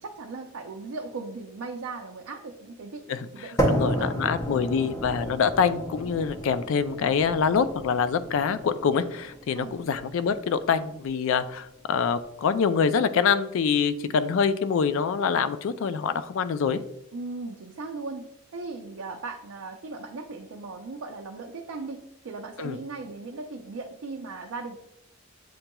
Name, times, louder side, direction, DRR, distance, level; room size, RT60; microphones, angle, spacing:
voice 1, 0.0-4.1 9.5-9.7 17.1-18.3 18.5-24.7, right 3 dB, 65° right, 2 dB, 0.4 m, -37 dB
sound 1, 3.6-11.6, right 1 dB, 15° left, 0.5 m, -32 dB
voice 2, 3.7-16.8 22.6-22.8, left 6 dB, 60° left, 13 dB, 0.3 m, -25 dB
7.7 x 2.9 x 2.2 m, 0.82 s
head